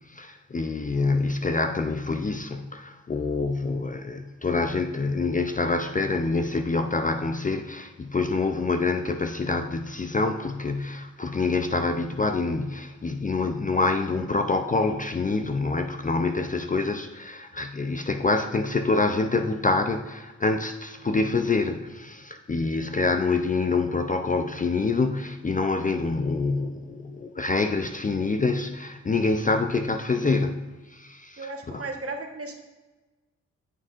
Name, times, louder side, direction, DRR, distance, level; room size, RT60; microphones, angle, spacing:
voice 1, 0.1-31.9, left 3 dB, 25° left, 7 dB, 0.5 m, -26 dB
voice 2, 31.4-32.6, right 3 dB, 45° right, 4 dB, 1.2 m, -35 dB
9.2 x 6.5 x 2.5 m, 1.2 s
cardioid pair, 55°, 33 cm